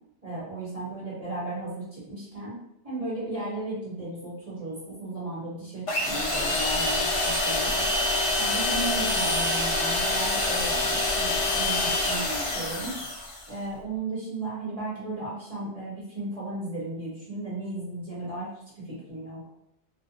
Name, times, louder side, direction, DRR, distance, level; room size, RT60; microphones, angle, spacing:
voice 1, 0.2-2.6 2.8-7.9 8.4-12.2 12.5-12.9 13.5-18.5 18.8-19.4, right 2 dB, 35° right, -9 dB, 0.9 m, -35 dB
sound 1, 5.9-13.5, left 2 dB, 45° left, 0.4 m, -26 dB
2.5 x 2.1 x 2.7 m, 0.77 s
omnidirectional pair, 1.2 m